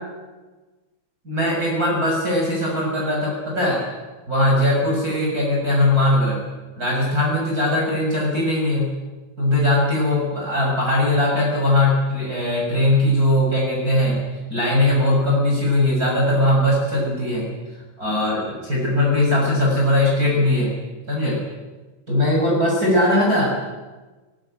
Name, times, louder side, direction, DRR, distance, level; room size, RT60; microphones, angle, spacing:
voice 1, 1.3-3.8 4.3-6.4 6.8-8.9 9.4-14.2 14.5-17.5 18.0-20.7 21.1-21.4 22.1-23.5, left 1 dB, 25° right, -3 dB, 7.1 m, -20 dB
23.0 x 20.0 x 9.1 m, 1.2 s
omnidirectional pair, 3.4 m